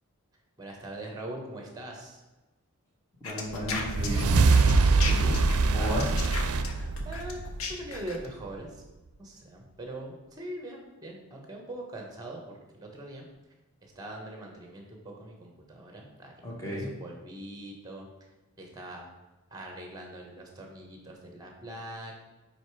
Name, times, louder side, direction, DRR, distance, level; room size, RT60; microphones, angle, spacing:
voice 1, 0.6-2.2 7.0-7.4 7.7-8.7 9.2-13.2 13.8-18.1 18.6-19.1 19.5-22.1, right 1 dB, 15° right, 1 dB, 1.1 m, -42 dB
sound 1, 3.2-8.3, left 4 dB, 70° left, 0.8 m, -36 dB
voice 2, 3.2-5.4 5.7-6.1 16.4-16.9, equal, 15° left, -5 dB, 1.5 m, -34 dB
sound 2, 3.6-8.1, right 3 dB, 80° right, 0.4 m, -24 dB
5.2 x 4.8 x 4.7 m, 1.1 s
head